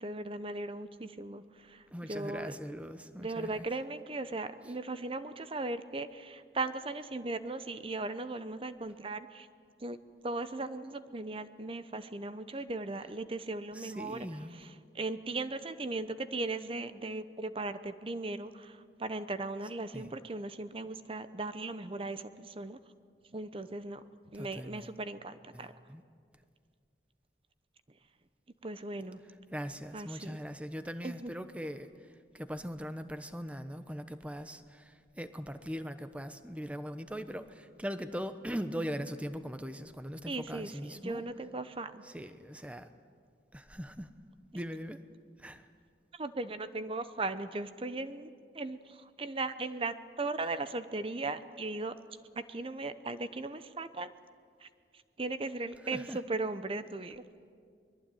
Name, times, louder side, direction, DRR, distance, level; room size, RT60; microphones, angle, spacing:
voice 1, 0.0-2.5 3.2-9.5 9.8-10.0 10.2-14.3 14.9-22.8 23.3-24.0 24.3-25.7 28.6-29.2 29.9-30.4 31.0-31.3 40.3-42.0 46.1-51.9 52.3-54.1 54.6-54.7 55.2-57.2, right 2 dB, 30° right, 12 dB, 0.8 m, -38 dB
voice 2, 1.9-3.7 13.7-14.6 19.9-20.1 24.3-24.9 25.5-26.0 29.5-31.9 32.3-41.2 42.0-42.9 43.5-44.1 44.5-45.0 45.4-45.7 55.9-56.2, equal, 10° right, 10 dB, 1.0 m, -40 dB
23.5 x 21.5 x 9.2 m, 2.1 s
head